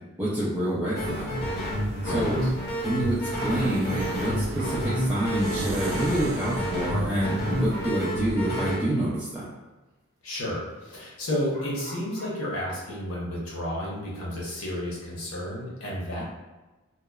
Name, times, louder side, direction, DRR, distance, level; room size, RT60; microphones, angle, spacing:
voice 1, 0.2-1.4 2.0-2.4 2.8-9.5, right 1 dB, 10° right, -11 dB, 0.4 m, -27 dB
sound 1, 0.9-8.8, equal, 50° left, 0.6 m, -29 dB
sound 2, 1.0-8.2, right 2 dB, 70° right, 0.4 m, -39 dB
voice 2, 2.0-2.5 10.2-16.2, left 1 dB, 80° left, -4 dB, 0.8 m, -32 dB
sound 3, 2.0-3.7 4.5-4.9 5.5-5.6 7.4-8.4 9.0-9.1 10.8-10.9 11.5-12.5, right 1 dB, 40° right, 0.8 m, -45 dB
2.8 x 2.0 x 2.3 m, 1.2 s
head